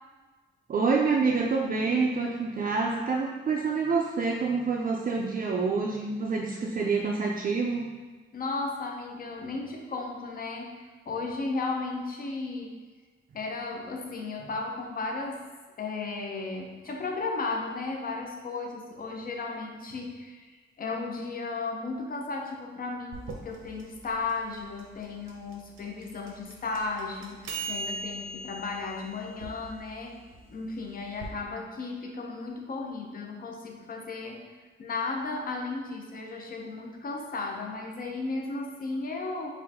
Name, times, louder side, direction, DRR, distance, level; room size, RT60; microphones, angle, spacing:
voice 1, 0.7-7.9, right 4 dB, 45° right, -2 dB, 0.4 m, -27 dB
voice 2, 8.3-12.8 13.3-30.2 30.5-39.5, left 3 dB, 45° left, 1 dB, 0.6 m, -35 dB
sound 1, 23.1-31.3, right 2 dB, 85° right, 0.7 m, -40 dB
5.1 x 2.6 x 3.5 m, 1.3 s
wide cardioid pair, 145°, 21 cm